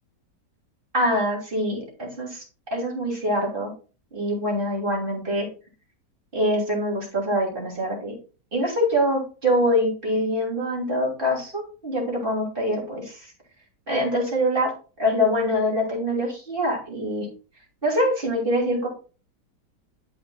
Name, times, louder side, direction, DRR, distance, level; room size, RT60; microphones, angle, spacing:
voice 1, 0.9-2.4 2.7-3.7 4.1-5.5 6.3-8.1 8.5-13.3 13.9-14.7 15.0-17.3 17.8-18.9, equal, 30° right, -1 dB, 3.1 m, -24 dB
11.5 x 6.0 x 2.3 m, 0.35 s
omnidirectional pair, 1.8 m